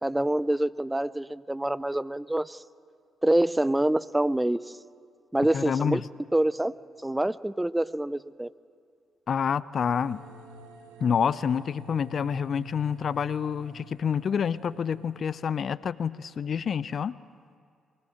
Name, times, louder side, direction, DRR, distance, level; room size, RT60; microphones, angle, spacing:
voice 1, 0.0-2.6 3.2-4.6 5.3-6.0 6.3-6.7 7.0-8.5, right 1 dB, 10° right, 18 dB, 0.6 m, -26 dB
voice 2, 5.5-6.1 9.3-10.2 11.0-17.2, left 7 dB, 55° left, 18 dB, 0.6 m, -28 dB
sound 1, 9.8-15.4, left 2 dB, 85° right, 1.7 m, -49 dB
23.0 x 20.0 x 7.9 m, 2.2 s
hypercardioid pair, 40°, 0 cm